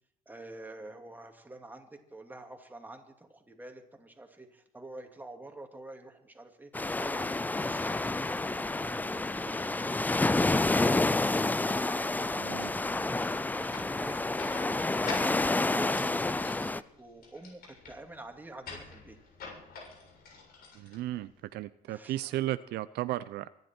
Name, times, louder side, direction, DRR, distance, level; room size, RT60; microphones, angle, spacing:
voice 1, 0.3-8.6 8.8-11.1 12.3-15.2 15.6-19.2 21.9-22.4, right 2 dB, 10° right, 3 dB, 2.5 m, -48 dB
sound 1, 6.7-16.8, left 2 dB, 10° left, 0.5 m, -29 dB
voice 2, 12.4-12.7 20.7-23.5, right 15 dB, 80° right, 14 dB, 0.6 m, -35 dB
sound 2, 13.7-21.5, left 5 dB, 65° left, 7.1 m, -47 dB
24.5 x 11.0 x 4.5 m, 0.74 s
cardioid pair, 110°, 17 cm